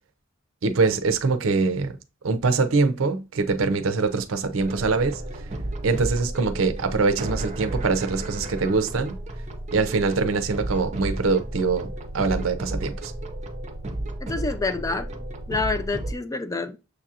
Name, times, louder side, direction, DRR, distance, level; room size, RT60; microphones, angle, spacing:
voice 1, 0.6-2.0 2.2-5.2 5.8-9.2 9.7-11.9 12.1-13.1, right 4 dB, 85° right, 0.6 m, -23 dB
sound 1, 4.6-16.1, right 1 dB, 35° right, 0.6 m, -33 dB
voice 2, 14.2-15.1 15.5-16.8, left 3 dB, 15° left, 0.3 m, -27 dB
6.6 x 2.4 x 2.7 m
head